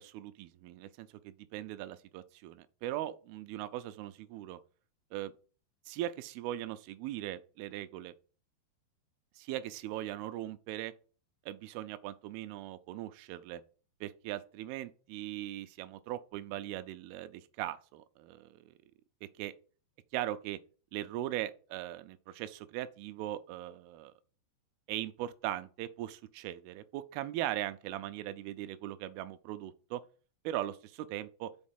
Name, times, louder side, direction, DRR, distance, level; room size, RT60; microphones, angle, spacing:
voice 1, 0.0-4.6 5.1-5.3 5.9-8.1 9.4-10.9 11.5-13.6 14.0-18.7 19.4-19.5 20.1-20.6 20.9-24.1 24.9-30.0 30.4-31.5, right 13 dB, 80° right, 2.2 m, -39 dB
6.3 x 4.3 x 5.7 m
omnidirectional pair, 4.9 m